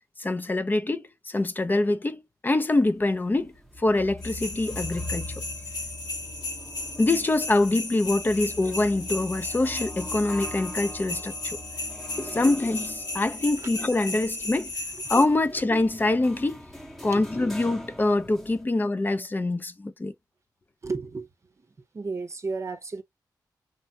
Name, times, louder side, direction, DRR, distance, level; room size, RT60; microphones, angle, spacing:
voice 1, 0.2-5.3 7.0-11.6 12.2-14.7 15.1-16.6 17.0-20.1, left 2 dB, 25° left, 0.5 m, -25 dB
sound 1, 2.8-18.6, left 1 dB, ahead, 0.8 m, -42 dB
sound 2, 4.2-15.2, left 2 dB, 90° left, 1.6 m, -35 dB
voice 2, 12.1-12.5 13.6-13.7 17.1-17.3 20.8-21.3 21.6-21.7 21.9-23.0, right 4 dB, 40° right, 0.7 m, -33 dB
3.2 x 2.2 x 2.7 m
cardioid pair, 70°, 7 cm